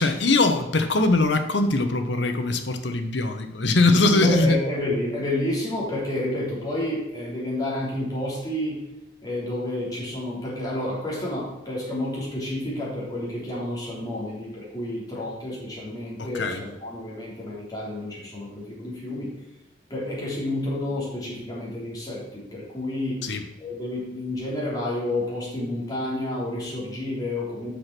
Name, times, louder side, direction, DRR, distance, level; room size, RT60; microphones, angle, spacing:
voice 1, 0.0-4.6 16.2-16.6 23.2-23.5, left 2 dB, 70° left, 7 dB, 1.0 m, -21 dB
voice 2, 4.2-8.8 9.2-19.3 19.9-23.2 23.6-27.7, left 1 dB, 20° left, -6 dB, 3.4 m, -30 dB
8.5 x 6.0 x 6.1 m, 1.0 s
head